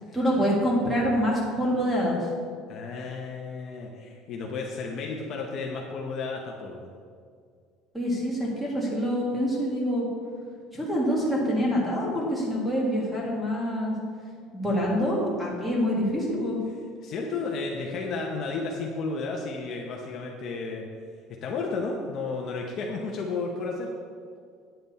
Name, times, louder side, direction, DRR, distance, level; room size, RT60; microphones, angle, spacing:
voice 1, 0.1-2.2 7.9-10.1 10.7-13.9 14.5-16.6, equal, ahead, -4 dB, 1.7 m, -26 dB
voice 2, 2.7-6.9 17.0-20.8 21.3-23.9, left 4 dB, 40° left, -1 dB, 0.8 m, -33 dB
9.1 x 7.6 x 4.2 m, 2.1 s
cardioid pair, 170°, 0 cm